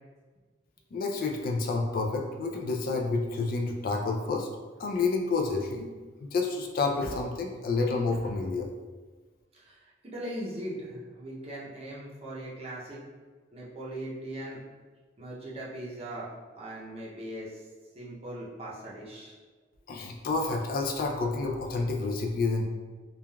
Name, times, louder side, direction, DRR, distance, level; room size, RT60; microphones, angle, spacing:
voice 1, 0.9-4.5 4.8-5.9 6.2-8.7 19.9-22.7, left 3 dB, 50° left, 2 dB, 0.3 m, -29 dB
voice 2, 9.5-13.0 13.5-14.6 15.2-16.3 16.6-17.6 17.9-19.3, right 1 dB, 35° right, -6 dB, 0.6 m, -39 dB
3.2 x 2.2 x 2.2 m, 1.4 s
head